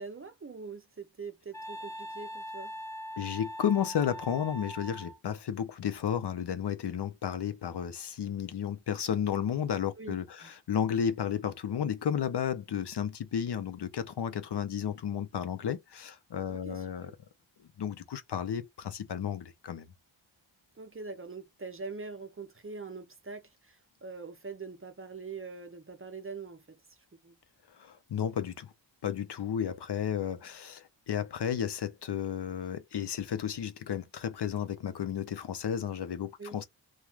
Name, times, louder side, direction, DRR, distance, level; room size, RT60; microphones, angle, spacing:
voice 1, 0.0-2.7 10.0-10.5 16.5-17.1 20.7-27.4 36.4-36.6, right 4 dB, 30° right, 0.6 m, -43 dB
Wind instrument woodwind instrument, 1.5-5.2, equal, 5° left, 0.8 m, -41 dB
voice 2, 3.2-17.1 17.8-19.9 27.8-28.7 29.0-36.7, left 8 dB, 60° left, 0.6 m, -33 dB
3.1 x 2.3 x 2.3 m
wide cardioid pair, 85°, 46 cm